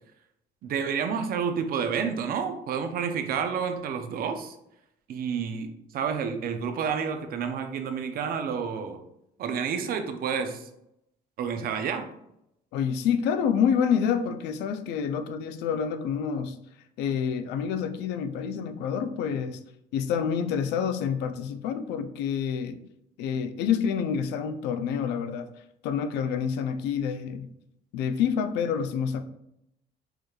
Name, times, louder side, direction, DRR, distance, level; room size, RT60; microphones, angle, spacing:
voice 1, 0.6-4.6 5.1-5.7 5.9-9.0 9.4-10.6 11.4-12.1, right 6 dB, 60° right, 7 dB, 0.6 m, -29 dB
voice 2, 12.7-16.6 17.0-19.6 19.9-22.8 23.2-25.5 25.8-27.5 27.9-29.2, left 7 dB, 85° left, 10 dB, 0.4 m, -27 dB
4.8 x 3.1 x 2.4 m, 0.80 s
cardioid pair, 110°, 17 cm